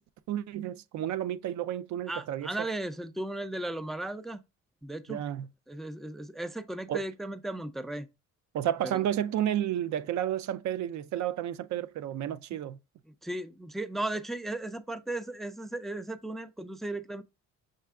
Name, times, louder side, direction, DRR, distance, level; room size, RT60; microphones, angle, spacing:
voice 1, 0.3-2.5 5.1-5.5 6.9-7.0 8.5-12.8, right 11 dB, 70° right, 0.4 m, -31 dB
voice 2, 2.1-4.4 4.8-5.2 5.7-8.1 8.8-9.0 12.5-12.6 13.2-17.2, right 1 dB, ahead, 0.4 m, -36 dB
6.5 x 2.3 x 3.5 m
cardioid pair, 90°, 30 cm